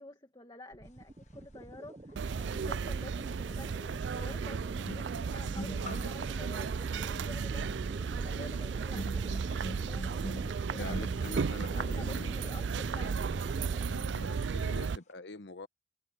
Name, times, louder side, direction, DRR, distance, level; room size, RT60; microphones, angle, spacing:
voice 1, 0.0-9.6 9.8-11.1 11.7-13.2, left 2 dB, 25° left, 2.1 m, -50 dB
sound 1, 0.7-13.8, right 1 dB, 30° right, 0.7 m, -48 dB
sound 2, 2.1-2.2 3.5-14.6 14.8-15.1, equal, 40° left, 1.2 m, -46 dB
sound 3, 2.2-15.0, right 5 dB, 90° right, 0.4 m, -34 dB
voice 2, 2.5-2.9 10.8-12.3 13.8-15.7, left 3 dB, 80° left, 1.1 m, -45 dB
head